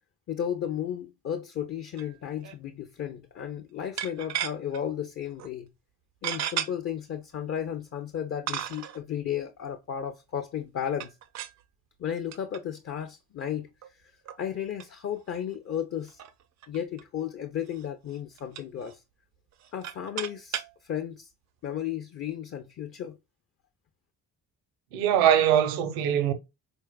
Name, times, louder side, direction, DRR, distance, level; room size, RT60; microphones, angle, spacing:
voice 1, 0.3-5.7 6.2-11.2 12.0-13.7 14.4-16.2 16.7-19.0 19.7-21.3 21.6-23.2, left 9 dB, 30° left, 0.5 m, -34 dB
sound 1, 2.0-2.2 2.4-2.6 4.0-4.8 5.4-5.5 6.2-6.7 7.6-7.7 8.5-9.0 10.9-11.6 12.3-12.6 13.0-13.1 13.8-13.9 14.2-14.4 14.8-14.9 15.2-15.3 15.5-15.6 16.1-17.0 17.7-17.8 18.1-18.9 19.5-20.7, right 10 dB, 35° right, 0.4 m, -35 dB
voice 2, 24.9-26.3, right 10 dB, 70° right, 0.7 m, -22 dB
4.2 x 2.4 x 2.2 m
figure-of-eight pair, 45°, 50 cm